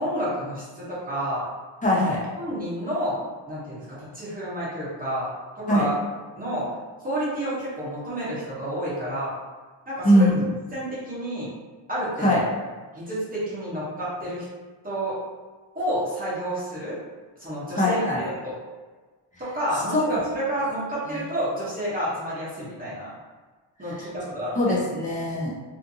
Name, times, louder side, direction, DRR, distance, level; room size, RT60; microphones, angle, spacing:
voice 1, 0.0-1.4 2.4-3.2 3.5-5.3 5.6-6.0 6.3-6.7 7.0-9.3 9.9-10.3 10.7-11.5 11.9-12.4 12.9-14.4 14.8-15.2 15.7-17.0 17.4-18.0 18.3-18.6 19.4-23.1 23.8-24.8, equal, 15° right, -10 dB, 0.8 m, -29 dB
voice 2, 1.8-2.2 5.7-5.8 10.0-10.4 12.2-12.4 17.7-18.2 19.9-20.2 24.6-25.5, equal, 15° left, -5 dB, 0.4 m, -21 dB
2.5 x 2.5 x 2.6 m, 1.4 s
cardioid pair, 165°, 50 cm